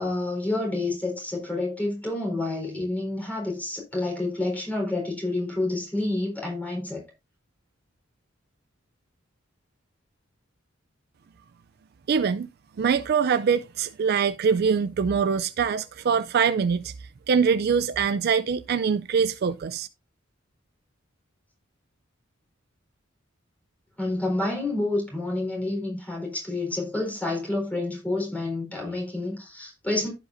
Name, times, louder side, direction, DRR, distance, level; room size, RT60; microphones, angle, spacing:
voice 1, 0.0-7.0 24.0-30.1, left 2 dB, 10° left, 4.0 m, -29 dB
voice 2, 12.1-12.5 12.8-16.9 17.3-19.9, right 6 dB, 50° right, 0.4 m, -23 dB
14.5 x 5.3 x 2.6 m
head